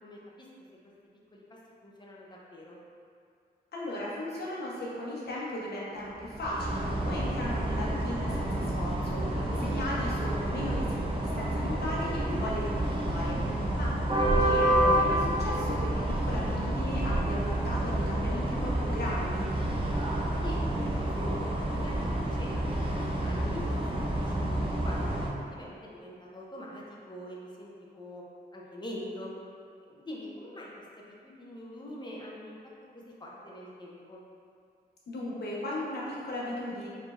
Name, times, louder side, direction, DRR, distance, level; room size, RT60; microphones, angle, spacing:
voice 1, 0.0-0.5 1.3-1.4 1.8-2.8 9.3-9.7 20.4-22.7 23.2-28.2 28.5-29.3 29.8-30.7 31.0-32.6 32.9-34.2, left 1 dB, 25° left, -4 dB, 0.7 m, -44 dB
voice 2, 3.7-10.9 11.3-13.9 14.4-19.5 35.1-36.9, left 1 dB, 70° left, -6 dB, 1.0 m, -36 dB
sound 1, 6.2-25.3, right 1 dB, 30° right, 0.6 m, -29 dB
4.5 x 3.2 x 2.5 m, 2.3 s
wide cardioid pair, 110°, 17 cm